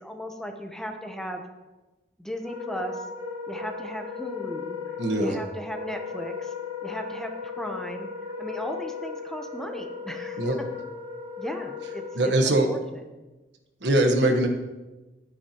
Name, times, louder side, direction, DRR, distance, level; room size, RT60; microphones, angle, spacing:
voice 1, 0.0-1.4 2.2-3.0 3.5-4.8 5.2-6.5 6.8-8.1 8.4-10.7 11.4-13.0, equal, 5° left, 4 dB, 0.8 m, -36 dB
Wind instrument woodwind instrument, 2.4-12.5, left 5 dB, 25° right, 2.7 m, -36 dB
voice 2, 5.0-5.4 10.4-10.6 12.1-12.7 13.8-14.5, right 1 dB, 90° right, 4 dB, 1.2 m, -22 dB
12.0 x 9.7 x 2.9 m, 1.1 s
head